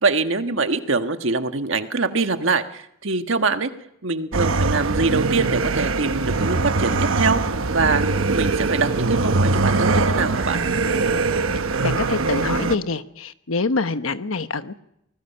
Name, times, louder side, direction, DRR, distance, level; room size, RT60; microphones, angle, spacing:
voice 1, 0.0-3.7 4.0-7.4 7.7-8.0 8.3-10.6, right 4 dB, 70° right, 7 dB, 1.4 m, -23 dB
sound 1, 4.3-12.8, right 3 dB, 90° right, 1.1 m, -22 dB
voice 2, 11.8-14.8, left 3 dB, 85° left, 11 dB, 1.1 m, -25 dB
25.5 x 20.0 x 5.8 m, 0.78 s
head